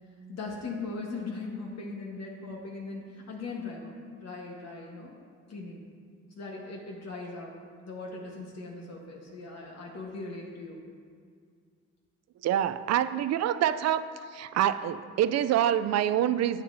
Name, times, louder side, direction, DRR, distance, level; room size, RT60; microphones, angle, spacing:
voice 1, 0.3-5.1 5.5-5.8 6.4-7.5 7.8-10.8, left 3 dB, 60° left, -2 dB, 1.2 m, -39 dB
voice 2, 12.4-14.0 14.3-16.6, right 10 dB, 60° right, 13 dB, 0.4 m, -26 dB
10.5 x 7.6 x 2.7 m, 2.1 s
cardioid pair, 90°, 30 cm